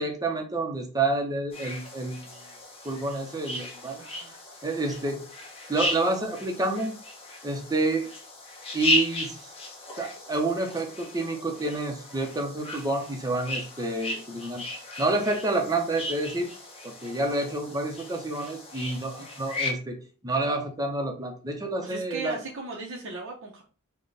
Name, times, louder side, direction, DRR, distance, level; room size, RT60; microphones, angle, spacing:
voice 1, 0.0-2.5 2.8-4.0 4.6-5.3 5.7-6.9 7.4-8.1 8.7-9.5 10.0-14.7 15.0-16.5 16.8-20.0 20.2-22.4, right 2 dB, 15° right, 3 dB, 0.6 m, -29 dB
sound 1, 1.5-19.7, left 2 dB, 25° left, 0.9 m, -35 dB
voice 2, 4.0-4.5 21.8-23.6, right 3 dB, 60° right, 0 dB, 0.6 m, -37 dB
4.0 x 2.2 x 3.2 m, 0.37 s
head